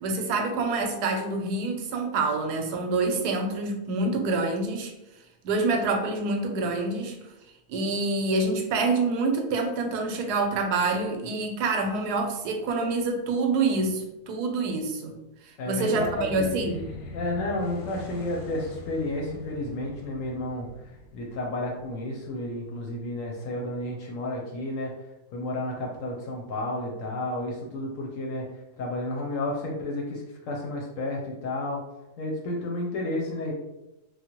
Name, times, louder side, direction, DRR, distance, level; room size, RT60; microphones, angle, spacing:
voice 1, 0.0-4.9 5.4-7.2 7.7-15.1 15.7-16.9, right 3 dB, 85° right, 4 dB, 1.1 m, -26 dB
voice 2, 15.6-16.5 17.1-24.9 25.3-28.5 28.8-31.8 32.2-33.5, left 1 dB, 70° left, -1 dB, 0.8 m, -31 dB
sound 1, 15.9-22.5, left 2 dB, 85° left, 1.1 m, -43 dB
3.1 x 2.1 x 2.9 m, 0.95 s
omnidirectional pair, 1.6 m